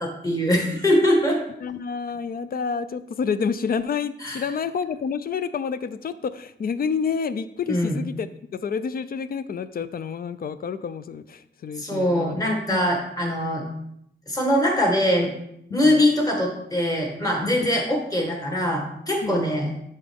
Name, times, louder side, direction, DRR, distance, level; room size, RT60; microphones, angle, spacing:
voice 1, 0.0-1.4 4.2-4.4 7.7-8.0 11.8-13.6 14.3-15.3 15.7-19.7, equal, 20° left, 0 dB, 1.5 m, -22 dB
voice 2, 1.6-8.3 8.6-12.4 12.7-12.9 15.7-16.0 17.4-17.7 19.2-19.4, left 6 dB, 55° left, 13 dB, 0.4 m, -29 dB
9.7 x 4.3 x 3.5 m, 0.75 s
wide cardioid pair, 165°, 19 cm